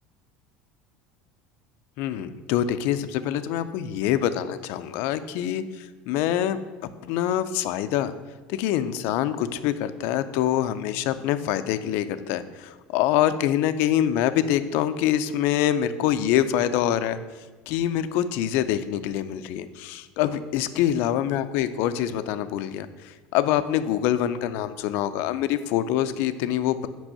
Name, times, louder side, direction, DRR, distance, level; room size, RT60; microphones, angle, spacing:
voice 1, 2.0-6.6 7.0-8.1 8.5-17.2 17.7-26.9, left 11 dB, 65° left, 12 dB, 0.5 m, -25 dB
6.2 x 5.4 x 6.6 m, 1.3 s
cardioid pair, 135°, 4 cm